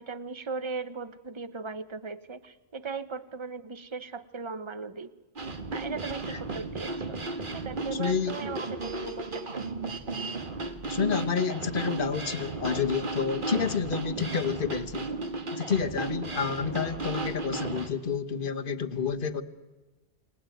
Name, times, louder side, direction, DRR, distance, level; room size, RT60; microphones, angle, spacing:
voice 1, 0.0-5.1 5.7-7.2 7.5-9.7, right 4 dB, 25° right, 13 dB, 1.0 m, -38 dB
sound 1, 5.4-17.9, right 3 dB, 50° right, 1.8 m, -34 dB
voice 2, 7.9-8.3 10.9-15.1 15.5-19.4, left 6 dB, 50° left, 9 dB, 1.3 m, -29 dB
28.5 x 19.0 x 9.3 m, 1.2 s
omnidirectional pair, 1.1 m